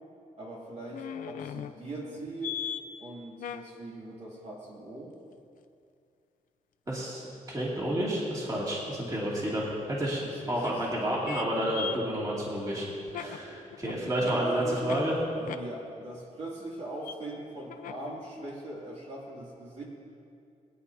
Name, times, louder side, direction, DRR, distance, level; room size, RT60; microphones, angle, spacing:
voice 1, 0.4-2.6 3.0-5.1 10.2-10.8 13.1-13.7 14.2-14.8 15.3-19.8, right 2 dB, 55° right, -5 dB, 2.6 m, -40 dB
sound 1, 0.9-2.8 3.4-3.7 7.5-7.6 9.2-9.3 10.6-10.8 11.2-11.5 11.7-15.0 15.5-15.6 17.0-17.2 17.7-18.1 18.5-18.6, left 9 dB, 80° left, 0.6 m, -39 dB
voice 2, 6.9-12.9 13.1-15.1, right 1 dB, 25° right, -5 dB, 2.5 m, -30 dB
21.5 x 9.4 x 2.8 m, 2.5 s
cardioid pair, 120°, 14 cm